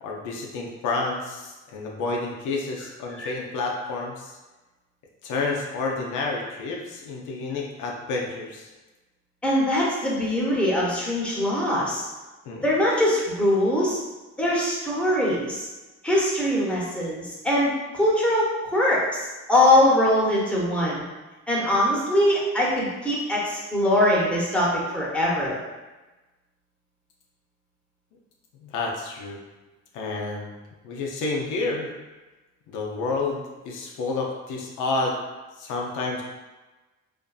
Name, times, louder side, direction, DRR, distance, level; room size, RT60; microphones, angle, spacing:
voice 1, 0.0-4.3 5.2-8.7 12.5-12.7 28.6-29.4 29.9-30.5 30.8-31.9 32.7-35.2 35.6-36.2, left 3 dB, 85° left, -1 dB, 0.5 m, -29 dB
voice 2, 9.4-12.0 12.6-14.0 14.4-15.7 16.0-21.0 21.5-25.6, left 1 dB, 5° left, -6 dB, 0.8 m, -22 dB
2.5 x 2.5 x 2.3 m, 1.2 s
cardioid pair, 90°, 30 cm